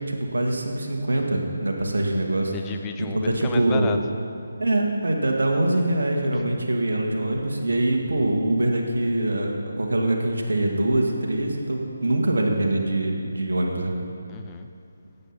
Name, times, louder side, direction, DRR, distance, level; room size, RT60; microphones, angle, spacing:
voice 1, 0.0-2.5 3.0-3.9 4.6-13.9, right 1 dB, 65° right, 1 dB, 2.0 m, -24 dB
voice 2, 2.5-4.2 6.3-6.6 14.3-14.7, left 7 dB, 15° left, 6 dB, 0.5 m, -34 dB
16.5 x 8.4 x 5.7 m, 2.5 s
figure-of-eight pair, 150°, 0 cm